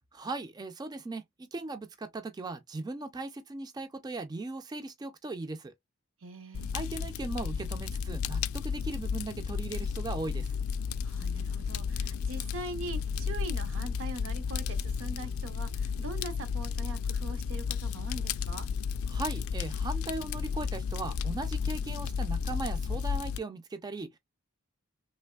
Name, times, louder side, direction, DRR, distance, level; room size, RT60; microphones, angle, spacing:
voice 1, 0.1-5.7 6.7-10.6 19.1-24.2, right 2 dB, 20° right, 0.3 m, -38 dB
voice 2, 6.2-6.7 11.0-18.7, right 2 dB, 70° right, 0.6 m, -42 dB
Fire, 6.5-23.4, left 6 dB, 80° left, 0.3 m, -33 dB
3.2 x 2.9 x 2.3 m
head